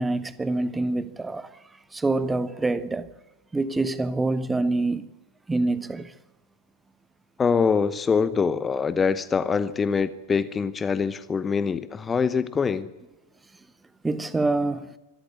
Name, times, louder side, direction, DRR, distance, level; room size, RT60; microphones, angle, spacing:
voice 1, 0.0-1.6 1.9-3.1 3.5-5.1 5.5-6.1 14.0-15.0, right 2 dB, 10° right, 1.1 m, -26 dB
voice 2, 7.4-12.9, left 5 dB, 20° left, 0.9 m, -24 dB
25.5 x 13.5 x 8.2 m
figure-of-eight pair, 90°, 0 cm